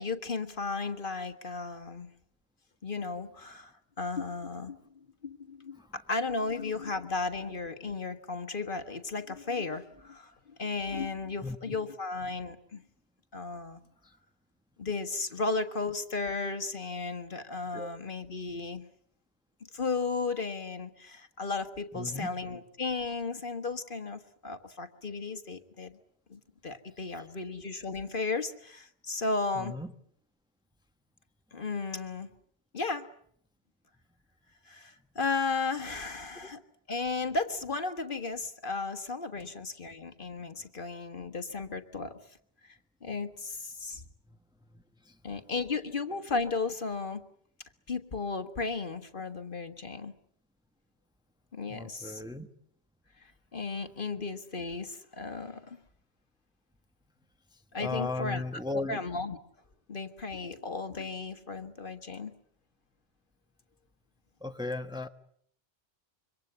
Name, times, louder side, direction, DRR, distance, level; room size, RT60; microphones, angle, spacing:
voice 1, 0.0-2.1 2.8-3.7 4.0-10.3 10.6-12.8 13.3-13.8 14.8-18.9 19.7-26.0 26.3-29.7 31.5-32.3 32.7-33.1 34.7-36.6 36.9-42.1 42.6-42.8 43.0-44.0 45.2-47.2 47.9-50.1 51.5-52.2 53.2-55.8 57.7-58.4 58.9-59.4 59.9-62.3, left 3 dB, 55° left, 8 dB, 1.7 m, -35 dB
voice 2, 11.4-11.8 14.0-14.1 17.7-17.9 21.9-22.3 27.2-27.3 29.5-29.9 39.4-39.5 44.7-45.4 51.7-52.5 57.5-59.0 64.4-65.1, left 2 dB, 5° right, 7 dB, 1.1 m, -37 dB
27.0 x 24.5 x 8.1 m, 0.65 s
omnidirectional pair, 1.1 m